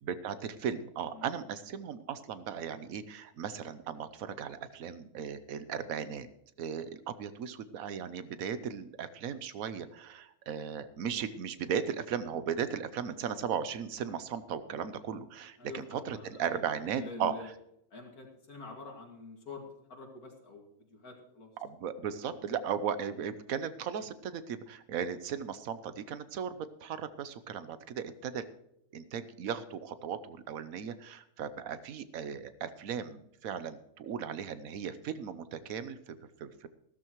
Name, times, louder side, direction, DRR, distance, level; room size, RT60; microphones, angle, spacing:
voice 1, 0.0-6.3 6.6-17.4 21.6-28.5 28.9-36.7, right 7 dB, 70° right, 13 dB, 1.2 m, -37 dB
voice 2, 15.6-17.5 17.9-21.5 22.2-22.4, left 3 dB, 85° left, 1 dB, 2.7 m, -47 dB
15.5 x 13.0 x 3.1 m, 0.77 s
omnidirectional pair, 1.5 m